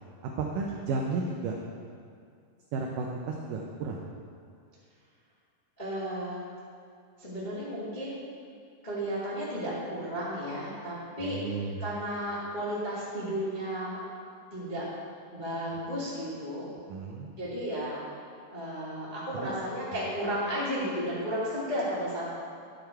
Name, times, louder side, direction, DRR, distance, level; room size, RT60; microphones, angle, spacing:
voice 1, 0.2-1.6 2.7-4.0 11.2-11.8 16.9-17.3 19.4-19.5, right 4 dB, 85° right, 0 dB, 1.8 m, -33 dB
voice 2, 5.8-6.4 7.2-8.2 8.8-14.0 14.5-14.9 15.3-16.7 17.4-18.0 18.5-22.3, equal, 35° left, -9 dB, 0.7 m, -33 dB
11.0 x 7.0 x 4.6 m, 2.3 s
omnidirectional pair, 4.6 m